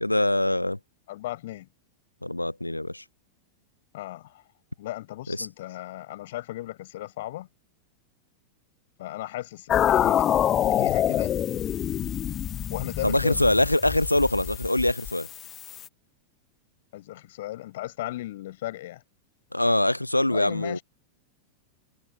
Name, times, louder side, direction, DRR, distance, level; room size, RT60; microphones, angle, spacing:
voice 1, 0.0-0.8 2.2-3.0 5.3-5.5 13.0-15.3 19.5-20.8, left 1 dB, 85° left, 0.6 m, -23 dB
voice 2, 1.1-1.7 3.9-4.3 4.8-7.5 9.0-11.4 12.7-13.5 16.9-19.0 20.3-20.8, left 15 dB, 55° left, 6.1 m, -36 dB
sound 1, 9.7-15.9, left 10 dB, 30° left, 0.5 m, -26 dB
figure-of-eight pair, 90°, 0 cm